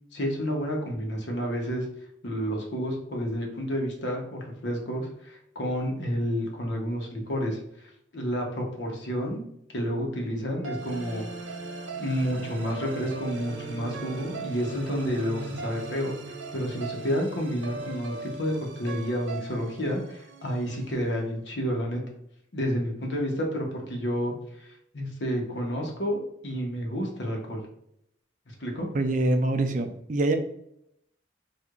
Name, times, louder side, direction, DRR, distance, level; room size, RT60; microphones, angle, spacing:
voice 1, 0.1-1.8 2.2-9.4 9.7-11.3 12.0-16.1 16.5-22.0 22.5-27.6 28.6-28.9, equal, 70° left, 0 dB, 0.9 m, -30 dB
sound 1, 10.6-20.9, right 3 dB, 90° right, 0.6 m, -38 dB
voice 2, 28.9-30.4, right 2 dB, 40° right, 6 dB, 0.4 m, -24 dB
4.6 x 2.5 x 2.4 m, 0.76 s
head